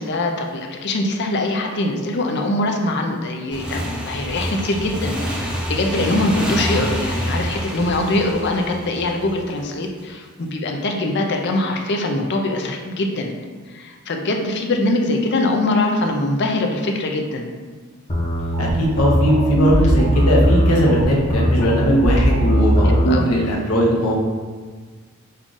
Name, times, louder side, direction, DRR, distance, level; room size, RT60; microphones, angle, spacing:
voice 1, 0.0-5.2 5.4-13.3 13.7-17.5 23.1-23.3, left 2 dB, 50° left, 2 dB, 0.5 m, -22 dB
Motorcycle / Engine, 3.5-9.9, equal, 5° right, 0.5 m, -27 dB
sound 1, 18.1-23.1, equal, 30° left, 0.9 m, -18 dB
voice 2, 18.6-24.2, equal, 75° left, -2 dB, 0.9 m, -19 dB
5.5 x 2.4 x 3.7 m, 1.5 s
head